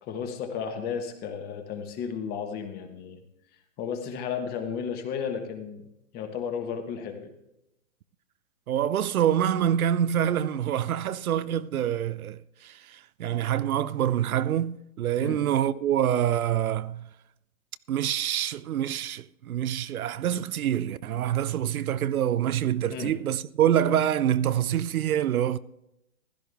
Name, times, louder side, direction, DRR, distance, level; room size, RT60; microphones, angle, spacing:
voice 1, 0.0-3.2 3.8-5.8 6.1-7.3 15.2-15.4 22.9-23.1, left 7 dB, 20° left, 1.3 m, -33 dB
voice 2, 8.7-17.1 17.9-25.6, right 10 dB, 80° right, 0.7 m, -26 dB
15.5 x 12.5 x 3.5 m
hypercardioid pair, 145°, 42 cm